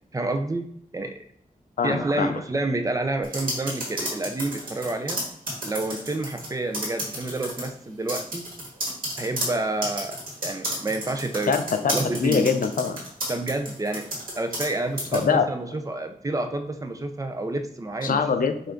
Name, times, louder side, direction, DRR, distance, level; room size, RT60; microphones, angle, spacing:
voice 1, 0.1-0.7 0.9-1.1 1.8-5.2 5.6-8.4 9.2-10.2 10.4-11.6 11.9-12.6 13.3-14.1 14.4-18.5, right 2 dB, 25° right, 6 dB, 0.5 m, -29 dB
voice 2, 1.8-2.4 11.5-13.0 15.1-15.5 18.0-18.7, left 6 dB, 70° left, 8 dB, 0.5 m, -24 dB
sound 1, 3.2-6.5 6.7-7.7 8.1-14.7 15.0-15.2, right 1 dB, 80° right, 1.7 m, -31 dB
5.5 x 2.5 x 3.8 m, 0.68 s
wide cardioid pair, 130°, 15 cm